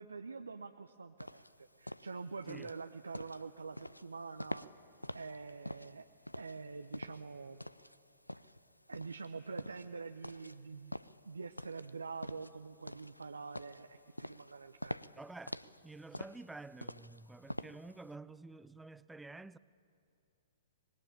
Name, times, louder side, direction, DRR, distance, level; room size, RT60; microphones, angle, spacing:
voice 1, 0.0-4.7 5.1-6.1 6.4-7.6 8.9-11.0 11.2-15.0, right 4 dB, 75° right, 0.8 m, -46 dB
sound 1, 1.2-18.1, left 1 dB, 90° left, 0.5 m, -46 dB
voice 2, 15.2-19.6, right 3 dB, 5° right, 0.5 m, -50 dB
25.5 x 21.0 x 8.8 m
figure-of-eight pair, 110°, 0 cm